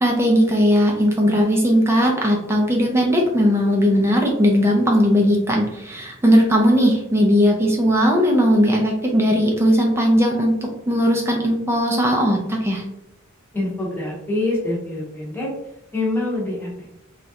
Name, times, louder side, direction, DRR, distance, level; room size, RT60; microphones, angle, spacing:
voice 1, 0.0-10.5 10.9-12.8, equal, 10° right, 0 dB, 0.4 m, -18 dB
voice 2, 13.5-15.5 15.9-17.0, left 2 dB, 10° left, -5 dB, 0.8 m, -25 dB
3.1 x 2.4 x 2.7 m, 0.85 s
head